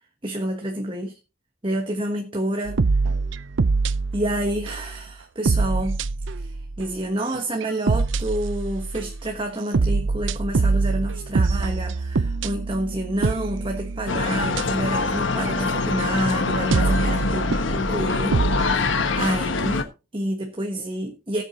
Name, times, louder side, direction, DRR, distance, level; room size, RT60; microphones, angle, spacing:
voice 1, 0.2-1.2 1.6-2.8 4.1-6.0 6.4-6.5 6.8-21.4, right 1 dB, 25° right, 3 dB, 1.4 m, -29 dB
sound 1, 2.7-5.0 5.5-6.9 7.3-9.3 9.7-15.0 15.4-15.5 15.9-16.2 16.7-18.8, right 3 dB, 70° right, 0.6 m, -25 dB
sound 2, 14.1-19.8, left 3 dB, 70° left, 1.2 m, -24 dB
18.5 x 8.2 x 2.8 m, 0.30 s
head